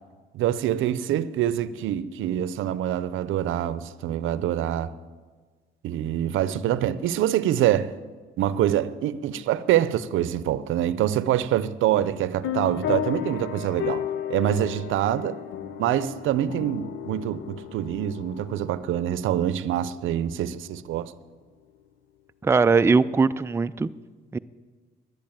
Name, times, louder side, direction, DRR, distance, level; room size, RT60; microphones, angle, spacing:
voice 1, 0.3-4.9 5.8-7.9 8.4-15.4 15.8-21.1, right 11 dB, 80° right, 0.6 m, -25 dB
sound 1, 12.4-20.5, left 10 dB, 75° left, 0.9 m, -34 dB
voice 2, 22.4-23.9 24.3-24.4, right 4 dB, 15° right, 0.4 m, -20 dB
11.0 x 10.5 x 9.0 m
cardioid pair, 90°, 20 cm